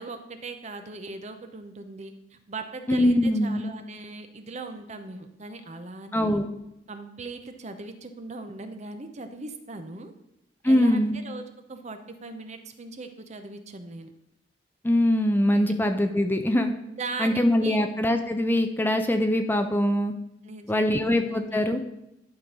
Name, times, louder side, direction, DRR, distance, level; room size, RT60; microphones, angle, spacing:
voice 1, 0.0-6.4 6.9-10.1 10.6-11.4 11.7-14.1 17.0-17.8 20.4-21.6, right 3 dB, 40° right, 7 dB, 0.8 m, -39 dB
voice 2, 2.9-3.7 6.1-6.4 10.6-11.2 14.8-16.7 17.2-20.1 20.7-21.8, left 1 dB, 10° left, 6 dB, 0.5 m, -22 dB
11.0 x 3.8 x 5.2 m, 0.85 s
head